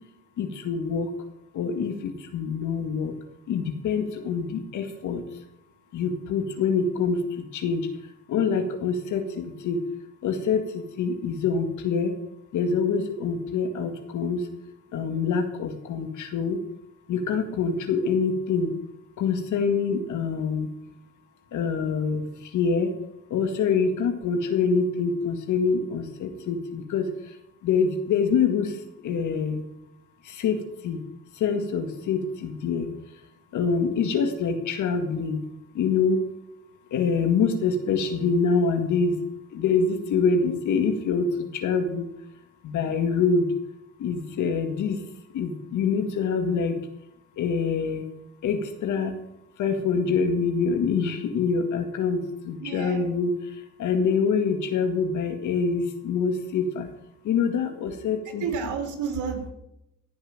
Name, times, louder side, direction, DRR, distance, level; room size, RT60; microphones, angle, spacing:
voice 1, 0.4-1.1 1.5-3.1 3.5-5.2 5.9-7.9 8.3-9.8 10.2-12.1 12.5-14.5 14.9-16.6 17.1-18.7 19.2-20.7 21.5-22.9 23.3-27.3 27.6-29.6 30.2-31.0 31.4-32.9 33.5-35.4 35.7-36.2 36.9-39.2 39.5-42.1 42.6-43.5 44.0-45.0 45.3-46.8 47.4-48.0 48.4-49.1 49.6-53.3 53.8-56.9 57.2-58.4, left 5 dB, 75° left, 6 dB, 2.0 m, -25 dB
voice 2, 52.6-53.1 58.2-59.5, right 6 dB, 80° right, 3 dB, 3.5 m, -31 dB
16.5 x 5.8 x 8.8 m, 0.83 s
cardioid pair, 90°, 30 cm